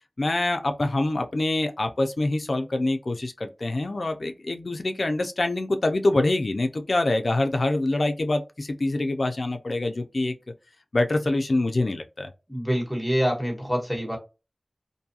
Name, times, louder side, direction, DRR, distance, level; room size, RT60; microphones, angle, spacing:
voice 1, 0.2-10.3 10.9-12.3, left 2 dB, 75° left, 0.4 m, -25 dB
voice 2, 12.5-14.2, equal, 5° right, 1.2 m, -26 dB
2.6 x 2.3 x 2.7 m
wide cardioid pair, 65°, 0 cm